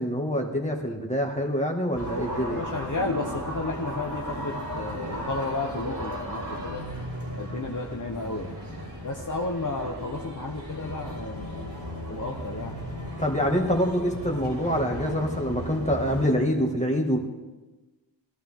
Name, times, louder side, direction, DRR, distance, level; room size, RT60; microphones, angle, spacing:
voice 1, 0.0-2.6 13.2-17.2, equal, 15° left, 1 dB, 2.1 m, -26 dB
sound 1, 1.9-16.3, equal, 65° right, 5.4 m, -35 dB
voice 2, 2.5-6.8 7.4-8.6 9.0-11.7 12.1-12.8, left 3 dB, 45° left, 1 dB, 1.1 m, -33 dB
18.5 x 12.0 x 3.8 m, 1.2 s
wide cardioid pair, 55°, 45 cm